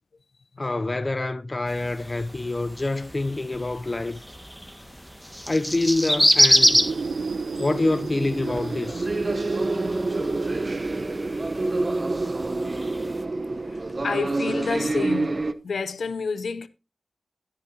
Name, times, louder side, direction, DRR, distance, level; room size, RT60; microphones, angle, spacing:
voice 1, 0.6-4.2 5.5-6.8 7.6-9.1, left 2 dB, 35° left, 0.6 m, -26 dB
sound 1, 1.7-13.2, equal, 5° left, 1.8 m, -27 dB
sound 2, 6.4-14.1, right 4 dB, 80° right, 1.0 m, -35 dB
sound 3, 8.4-15.5, right 2 dB, 45° right, 0.9 m, -27 dB
voice 2, 14.0-15.4 15.6-16.7, left 5 dB, 80° left, 0.7 m, -28 dB
12.5 x 11.0 x 2.8 m
cardioid pair, 50°, 0 cm